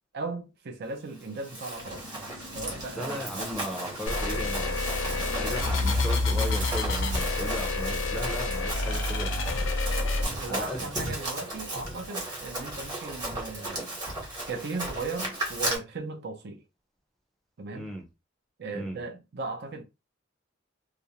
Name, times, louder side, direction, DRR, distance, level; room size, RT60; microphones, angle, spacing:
voice 1, 0.1-2.0 2.5-3.4 9.9-10.1 10.4-14.0 14.5-16.6 17.6-17.9 18.6-19.8, right 3 dB, 60° right, 0.5 m, -37 dB
Run, 1.2-15.8, right 1 dB, 20° right, 1.0 m, -36 dB
sound 1, 1.8-7.2, left 1 dB, 90° right, 1.0 m, -46 dB
voice 2, 3.0-9.9 10.5-10.9 17.7-18.1 18.7-19.0, equal, ahead, 0.5 m, -37 dB
sound 2, 4.1-10.2, left 2 dB, 90° left, 0.5 m, -28 dB
2.4 x 2.0 x 2.8 m
head